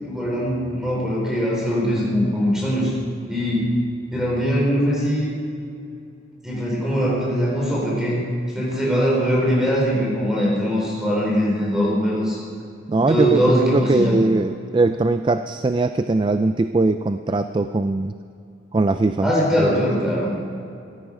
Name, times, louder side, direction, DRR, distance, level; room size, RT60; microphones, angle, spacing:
voice 1, 0.0-2.9 3.3-3.6 4.1-5.3 6.4-8.2 8.5-12.4 13.1-14.2 19.2-20.3, equal, 5° right, -4 dB, 4.3 m, -21 dB
voice 2, 12.9-18.1 18.7-19.3 19.6-19.8, right 3 dB, 25° right, 10 dB, 0.3 m, -21 dB
16.5 x 13.0 x 4.9 m, 2.5 s
head